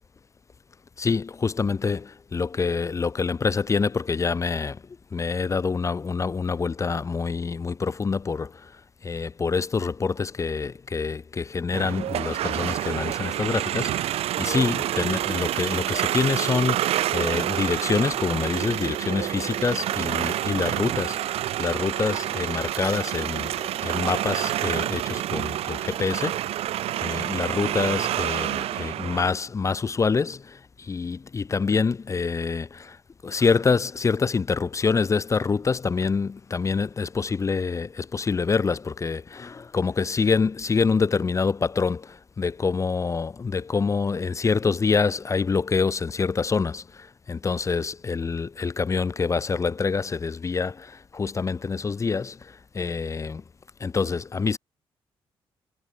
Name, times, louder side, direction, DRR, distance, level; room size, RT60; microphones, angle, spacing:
voice 1, 1.0-4.8 5.1-26.5 27.0-33.0 33.2-53.4 53.8-54.6, left 5 dB, 30° left, 0.6 m, -26 dB
sound 1, 11.7-29.3, right 13 dB, 80° right, 0.6 m, -28 dB
cardioid pair, 85°, 10 cm